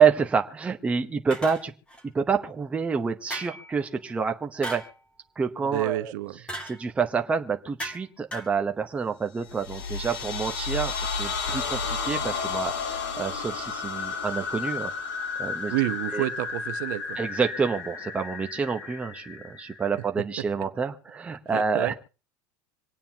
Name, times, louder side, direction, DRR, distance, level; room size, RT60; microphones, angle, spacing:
voice 1, 0.0-1.7 2.1-4.8 5.4-6.1 6.6-14.9 15.4-15.7 16.1-16.2 17.2-21.9, right 6 dB, 10° right, 0.9 m, -27 dB
sound 1, 1.3-2.0 3.3-3.7 4.6-5.0 6.5-6.8 7.8-8.1 8.3-8.6, equal, 10° left, 2.3 m, -36 dB
voice 2, 5.7-6.4 15.7-17.2 21.5-21.9, right 16 dB, 70° right, 1.0 m, -29 dB
sound 2, 9.4-20.1, left 5 dB, 85° left, 4.1 m, -32 dB
26.5 x 9.0 x 2.9 m
supercardioid pair, 160°, 11 cm